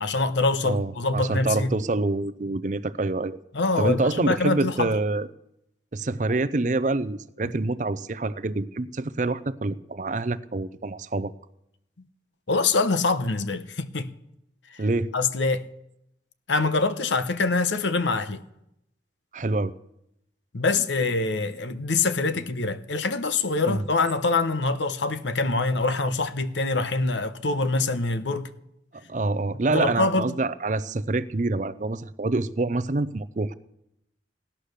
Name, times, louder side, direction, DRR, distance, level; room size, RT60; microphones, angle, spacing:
voice 1, 0.0-1.7 3.5-4.9 12.5-14.1 15.1-15.7 16.5-18.4 20.5-28.5 29.7-30.3, left 3 dB, 80° left, 0.9 m, -24 dB
voice 2, 0.6-3.4 3.8-5.3 5.9-11.3 14.8-15.1 19.3-19.7 23.7-23.8 29.1-33.5, right 2 dB, 40° right, 0.5 m, -26 dB
17.0 x 11.5 x 6.6 m
head